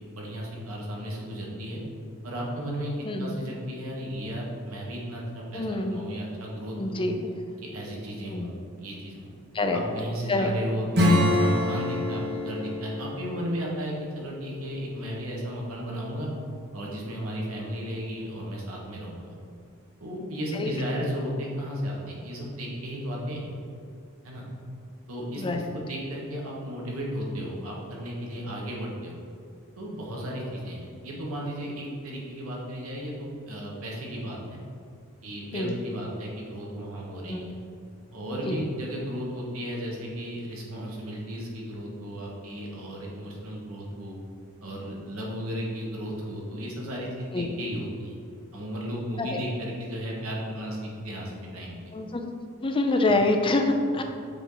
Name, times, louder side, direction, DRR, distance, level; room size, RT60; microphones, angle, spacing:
voice 1, 0.1-1.8 2.2-7.1 7.6-9.3 9.7-16.3 16.7-19.3 20.0-23.5 24.2-24.4 25.1-29.1 29.8-34.6 35.2-37.5 38.1-44.2 44.6-48.1 48.5-51.7 53.1-53.2, equal, 75° right, -3 dB, 1.4 m, -34 dB
voice 2, 5.5-6.1 6.8-7.3 8.1-8.5 9.5-9.8 10.3-10.5 20.5-20.7 25.4-25.6 35.5-35.7 37.3-37.5 38.4-38.6 47.3-47.5 49.2-49.4 51.9-52.3 52.6-54.0, left 2 dB, 25° left, 4 dB, 0.5 m, -26 dB
Acoustic guitar / Strum, 10.9-15.2, left 1 dB, 50° right, 1.3 m, -27 dB
6.9 x 4.3 x 3.9 m, 2.4 s
head